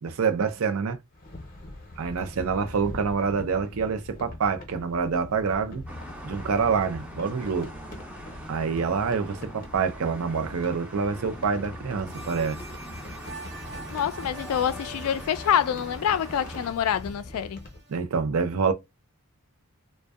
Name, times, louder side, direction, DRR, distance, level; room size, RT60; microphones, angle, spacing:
voice 1, 0.0-1.0 2.0-5.8 6.2-7.7 8.5-12.6 17.9-18.7, right 5 dB, 70° right, 0.5 m, -26 dB
sound 1, 1.1-17.8, left 1 dB, 40° left, 0.7 m, -42 dB
sound 2, 5.9-16.7, right 1 dB, 5° right, 0.5 m, -43 dB
sound 3, 12.1-18.0, right 1 dB, 50° right, 1.0 m, -45 dB
voice 2, 13.9-17.6, left 9 dB, 75° left, 0.3 m, -26 dB
2.6 x 2.1 x 2.3 m
head